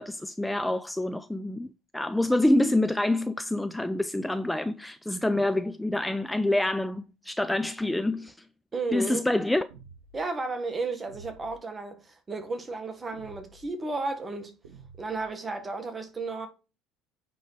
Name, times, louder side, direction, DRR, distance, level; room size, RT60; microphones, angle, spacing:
voice 1, 0.0-8.3 8.9-9.7, left 1 dB, 5° left, 0.5 m, -27 dB
voice 2, 8.7-9.2 10.1-14.6 15.0-16.5, right 3 dB, 25° right, 1.7 m, -33 dB
sound 1, 9.7-10.2 11.1-11.6 13.1-13.7 14.6-15.3, right 4 dB, 85° right, 1.1 m, -50 dB
9.1 x 3.8 x 4.8 m
hypercardioid pair, 70°, 0 cm